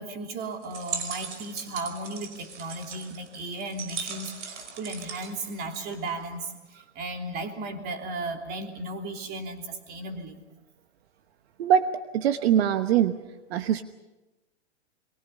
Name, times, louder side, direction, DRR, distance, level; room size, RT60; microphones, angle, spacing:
voice 1, 0.0-10.4, right 2 dB, 25° right, 4 dB, 3.1 m, -35 dB
sound 1, 0.6-6.3, right 6 dB, 80° right, 4.8 m, -39 dB
voice 2, 11.6-13.2 13.5-13.8, right 9 dB, 60° right, 9 dB, 1.2 m, -23 dB
29.0 x 24.0 x 5.6 m, 1.1 s
hypercardioid pair, 145°, 35 cm